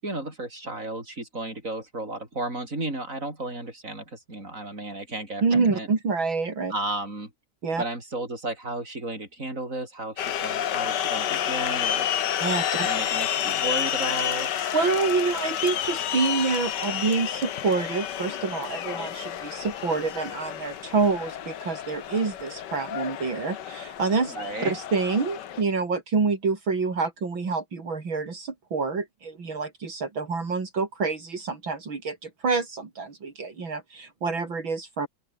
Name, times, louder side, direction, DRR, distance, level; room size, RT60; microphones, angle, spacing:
voice 1, 0.0-5.9 6.7-7.3 7.8-12.1 12.7-14.7 24.3-24.8, right 2 dB, 40° right, 7.9 m, -34 dB
voice 2, 5.4-6.7 7.6-7.8 12.4-12.9 14.7-24.4 24.6-35.1, right 4 dB, 75° right, 4.4 m, -27 dB
sound 1, 10.2-25.6, left 10 dB, 65° left, 1.7 m, -30 dB
open air
omnidirectional pair, 2.2 m